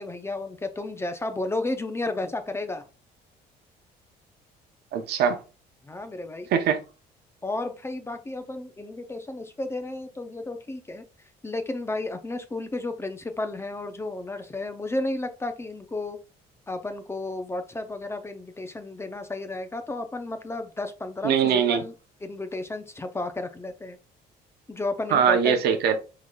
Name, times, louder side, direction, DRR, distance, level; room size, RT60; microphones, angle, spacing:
voice 1, 0.0-2.8 5.8-6.5 7.4-11.0 11.4-16.2 16.7-21.9 22.2-24.0 24.7-25.7, left 2 dB, 15° left, 0.5 m, -32 dB
voice 2, 4.9-5.4 6.5-6.8 21.2-21.8 25.1-26.0, right 8 dB, 75° right, 0.8 m, -22 dB
4.9 x 3.8 x 2.3 m
cardioid pair, 110°, 17 cm